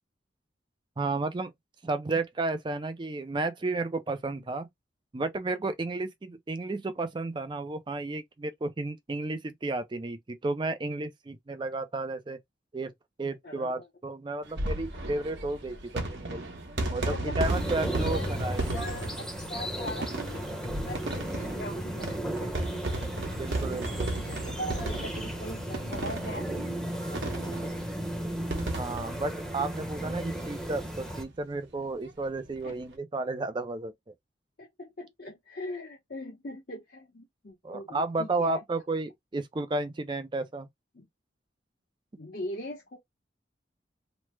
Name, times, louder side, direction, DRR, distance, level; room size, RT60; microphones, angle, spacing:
voice 1, 1.0-1.5 1.8-4.7 5.1-12.4 12.7-12.9 13.2-16.4 16.9-18.6 23.2-24.2 28.8-33.9 37.6-40.7, right 3 dB, 25° right, 0.4 m, -32 dB
voice 2, 13.4-13.9 17.0-17.5 17.8-23.1 24.1-27.6 32.6-32.8 34.6-38.6 40.9-41.1 42.2-43.0, left 1 dB, 50° left, 0.7 m, -41 dB
sound 1, 14.4-30.5 30.8-30.9 31.1-31.2 32.5-32.7, right 1 dB, 65° right, 0.9 m, -35 dB
sound 2, 17.5-31.2, equal, 5° left, 0.7 m, -35 dB
3.1 x 2.0 x 3.1 m
head